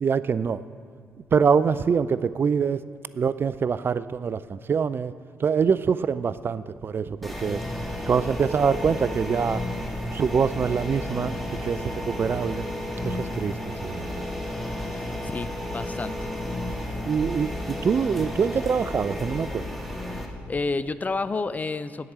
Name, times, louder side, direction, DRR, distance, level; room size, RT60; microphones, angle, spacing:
voice 1, 0.0-0.6 1.3-2.8 3.1-5.1 5.4-7.6 8.1-9.6 10.1-11.3 11.6-12.7 13.0-14.3 17.1-19.6, right 6 dB, 45° right, 16 dB, 0.3 m, -24 dB
sound 1, 7.2-20.3, left 1 dB, ahead, 1.5 m, -32 dB
voice 2, 14.9-16.3 20.1-22.1, left 3 dB, 30° left, 14 dB, 0.4 m, -31 dB
10.0 x 4.9 x 7.8 m, 2.2 s
supercardioid pair, 50°, 5 cm